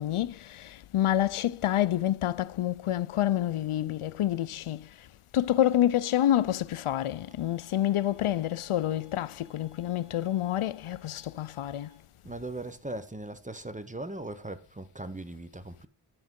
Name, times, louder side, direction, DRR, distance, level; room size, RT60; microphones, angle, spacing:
voice 1, 0.0-4.9 5.3-11.9, left 12 dB, 80° left, 0.5 m, -28 dB
sound 1, 6.9-12.0, right 1 dB, 75° right, 4.1 m, -63 dB
voice 2, 12.2-15.9, right 2 dB, 15° right, 0.7 m, -39 dB
10.5 x 5.9 x 3.7 m
wide cardioid pair, 75°, 50 cm